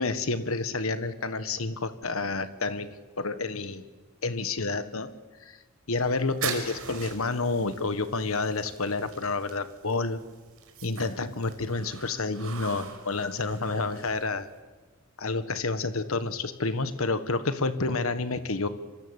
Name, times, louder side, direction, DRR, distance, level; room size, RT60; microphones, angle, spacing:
voice 1, 0.0-2.9 3.2-3.8 4.2-5.1 5.4-5.6 5.9-10.2 10.8-14.5 15.2-18.7, left 3 dB, 70° left, 11 dB, 1.5 m, -29 dB
sound 1, 5.9-14.6, right 7 dB, 70° right, 4.7 m, -42 dB
27.0 x 25.0 x 8.3 m, 1.3 s
head